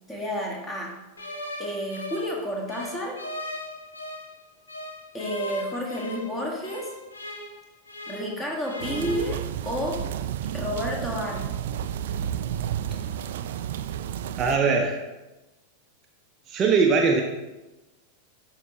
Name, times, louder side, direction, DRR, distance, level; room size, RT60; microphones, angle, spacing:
voice 1, 0.1-0.9 1.6-3.2 5.1-6.9 8.1-9.4 9.6-10.1 10.5-11.5, equal, 15° left, -1 dB, 1.7 m, -30 dB
sound 1, 1.2-4.3 4.7-8.4 8.6-9.2, left 1 dB, 75° left, 1.1 m, -38 dB
sound 2, 8.8-14.6, right 10 dB, 55° right, 0.3 m, -31 dB
voice 2, 14.4-15.0 16.5-17.2, right 4 dB, 30° right, 2 dB, 0.7 m, -21 dB
11.5 x 3.8 x 3.0 m, 1.1 s
figure-of-eight pair, 90°, 0 cm